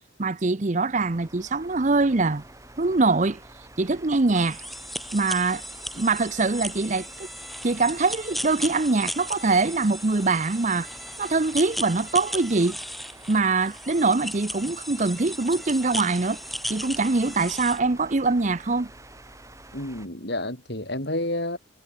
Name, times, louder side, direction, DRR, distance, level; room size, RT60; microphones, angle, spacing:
voice 1, 0.2-2.4 2.8-3.4 3.8-4.6 5.1-5.6 5.9-7.1 7.6-10.9 11.2-12.8 13.3-16.4 16.7-18.9, right 3 dB, 35° right, 0.7 m, -23 dB
sound 1, 0.9-20.1, right 2 dB, 15° right, 4.6 m, -48 dB
sound 2, 4.3-17.8, equal, ahead, 6.0 m, -36 dB
voice 2, 19.7-21.6, left 1 dB, 55° left, 7.4 m, -30 dB
head